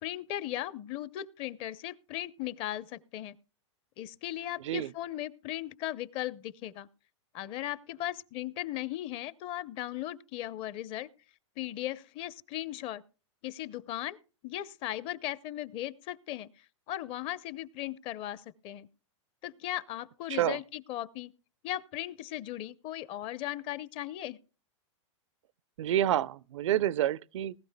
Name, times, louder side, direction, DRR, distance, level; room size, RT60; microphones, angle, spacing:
voice 1, 0.0-3.4 4.0-6.9 7.3-11.1 11.6-13.0 13.4-14.2 14.4-18.9 19.4-21.3 21.6-24.4, left 14 dB, 35° left, 0.7 m, -37 dB
voice 2, 25.8-27.5, right 12 dB, 75° right, 0.5 m, -28 dB
19.5 x 13.0 x 2.2 m
hypercardioid pair, 140°, 16 cm